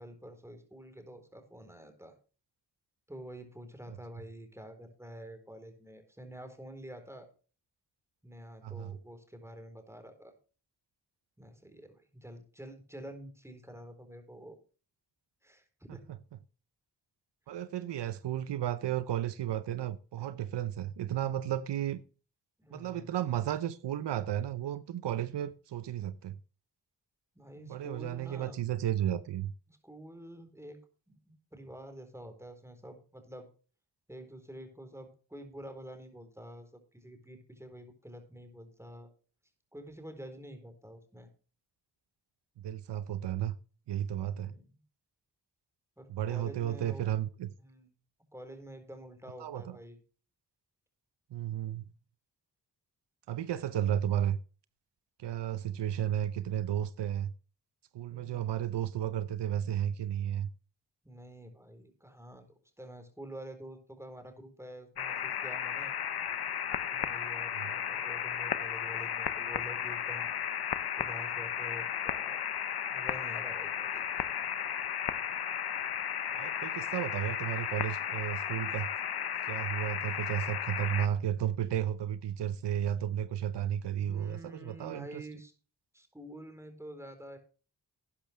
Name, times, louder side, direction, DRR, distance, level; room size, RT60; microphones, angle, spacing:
voice 1, 0.0-2.2 3.1-7.3 8.2-10.3 11.4-14.6 15.4-16.1 22.6-23.2 27.4-28.6 29.7-30.8 31.1-33.5 34.1-39.1 39.7-41.3 44.4-44.8 46.0-47.1 47.6-47.9 48.3-50.0 61.0-66.0 66.9-70.3 71.0-72.4 72.9-74.3 83.9-85.5 85.9-87.4, right 1 dB, 5° right, 3.9 m, -48 dB
voice 2, 8.6-9.0 17.5-22.0 22.7-26.3 27.6-29.5 42.6-43.6 43.9-44.5 46.1-47.5 49.4-49.8 51.3-51.8 53.3-54.4 55.2-57.3 57.9-60.5 67.5-67.7 76.3-78.9 79.5-85.2, right 11 dB, 85° right, 0.7 m, -33 dB
sound 1, 65.0-81.1, left 9 dB, 65° left, 0.9 m, -34 dB
12.5 x 10.0 x 3.2 m
cardioid pair, 45°, 41 cm